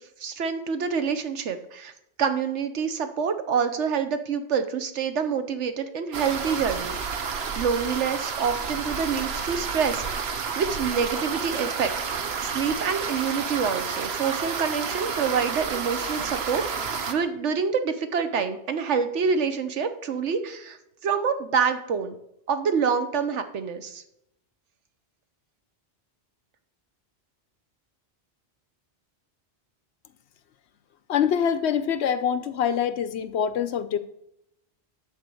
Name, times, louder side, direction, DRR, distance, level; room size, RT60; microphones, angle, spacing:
voice 1, 0.2-1.9 2.2-11.9 12.4-22.2 22.5-24.0, right 6 dB, 90° right, 9 dB, 1.2 m, -27 dB
sound 1, 6.1-17.1, right 5 dB, 65° right, 1.1 m, -30 dB
voice 2, 31.1-34.0, left 8 dB, 75° left, 12 dB, 0.9 m, -25 dB
10.5 x 4.7 x 7.7 m, 0.81 s
omnidirectional pair, 1.2 m